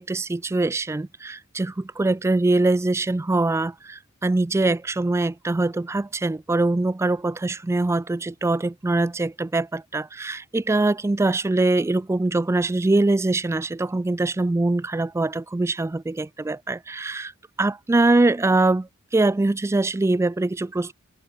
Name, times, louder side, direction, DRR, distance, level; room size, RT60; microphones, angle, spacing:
voice 1, 0.0-17.3 17.6-20.9, right 2 dB, 10° right, 0.3 m, -23 dB
open air
head